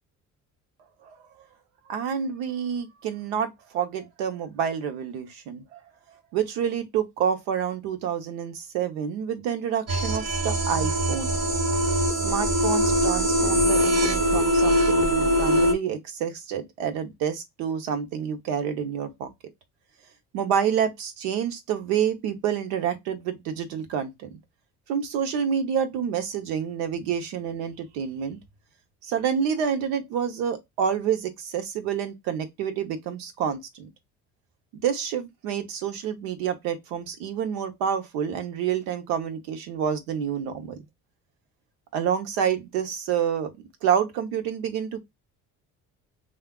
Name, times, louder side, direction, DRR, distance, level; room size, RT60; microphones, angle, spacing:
voice 1, 1.9-5.8 6.3-11.4 12.2-19.3 20.3-24.3 24.9-28.4 29.0-33.9 34.7-40.8 41.9-43.5 43.8-45.0, right 8 dB, 80° right, 0.9 m, -28 dB
sound 1, 9.9-15.7, equal, 50° right, 1.0 m, -22 dB
3.4 x 2.4 x 2.3 m
supercardioid pair, 70°, 34 cm